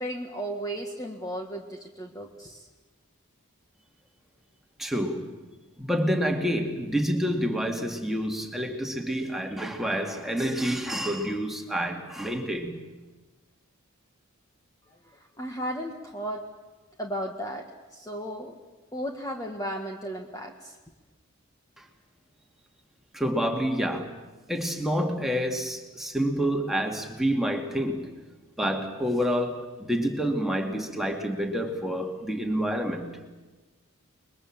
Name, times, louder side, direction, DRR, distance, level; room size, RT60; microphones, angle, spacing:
voice 1, 0.0-2.7 15.4-16.4 17.0-17.6 17.9-18.5 18.9-20.7, equal, 15° left, 2 dB, 1.6 m, -34 dB
voice 2, 4.8-5.3 5.8-12.8 21.8-21.9 23.1-24.1 24.5-28.2 28.6-33.2, equal, ahead, 2 dB, 2.4 m, -28 dB
29.0 x 22.0 x 7.4 m, 1.2 s
head